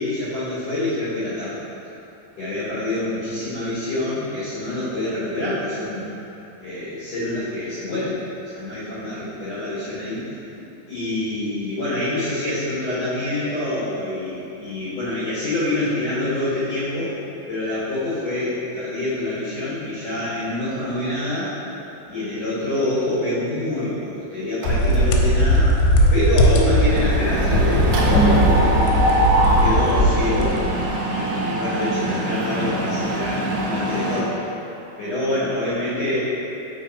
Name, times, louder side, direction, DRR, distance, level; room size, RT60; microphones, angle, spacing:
voice 1, 0.0-1.6 2.4-6.1 6.6-8.2 8.5-10.2 10.5-17.2 17.5-21.5 22.1-25.7 26.1-30.6 31.1-34.4 35.0-36.2, left 1 dB, 60° left, -12 dB, 1.7 m, -26 dB
Mechanisms, 24.6-25.2 25.6-25.8 26.0-34.2, right 1 dB, 85° right, 2.0 m, -23 dB
sound 1, 24.7-31.0, equal, 90° left, 3.1 m, -18 dB
6.3 x 5.6 x 4.0 m, 2.9 s
omnidirectional pair, 5.4 m